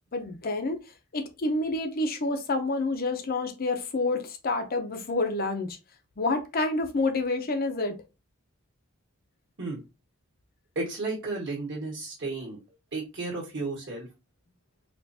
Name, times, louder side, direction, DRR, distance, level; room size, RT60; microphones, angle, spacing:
voice 1, 0.1-0.8 1.1-5.8 6.2-7.9, left 2 dB, 40° left, 0.7 m, -28 dB
voice 2, 10.7-12.6 12.9-14.1, right 3 dB, 55° right, 1.6 m, -33 dB
4.4 x 2.5 x 2.7 m
head